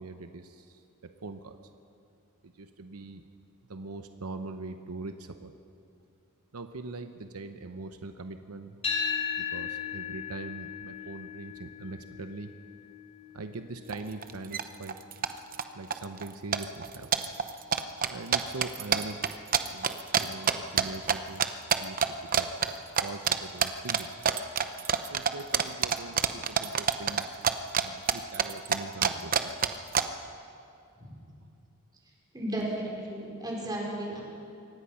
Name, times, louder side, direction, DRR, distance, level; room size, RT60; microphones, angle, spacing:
voice 1, 0.0-1.6 2.4-3.2 3.7-5.5 6.5-8.8 9.4-12.5 13.3-15.0 15.7-17.3 18.1-19.2 19.6-19.9 20.2-21.5 21.8-22.0 22.3-22.5 23.0-24.1 25.1-27.5 27.8-29.7, right 3 dB, 80° right, 8 dB, 0.8 m, -42 dB
sound 1, 8.8-17.0, left 6 dB, 25° left, 3.7 m, -38 dB
sound 2, 13.9-14.0 14.2-14.6 14.9-15.6 15.9-16.3 16.5-21.1 21.4-22.1 22.3-22.7 23.0-23.4 23.6-27.8 28.1-30.0, right 7 dB, 40° right, 0.8 m, -26 dB
voice 2, 32.3-34.2, right 1 dB, 20° right, -3 dB, 4.7 m, -34 dB
24.0 x 18.5 x 5.7 m, 2.5 s
head